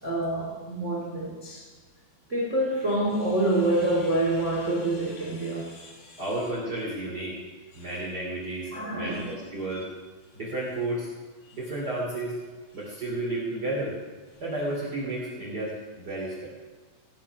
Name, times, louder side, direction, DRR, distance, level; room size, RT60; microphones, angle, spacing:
voice 1, 0.0-1.6 2.3-6.2 7.8-7.9 8.7-9.3 9.7-9.8, right 1 dB, 80° right, -2 dB, 0.6 m, -27 dB
voice 2, 6.2-7.4 7.7-9.8 10.3-11.1 11.5-12.3 12.7-13.9 14.4-16.5, right 2 dB, 30° right, -5 dB, 2.0 m, -32 dB
18.5 x 9.5 x 6.0 m, 1.4 s
omnidirectional pair, 5.9 m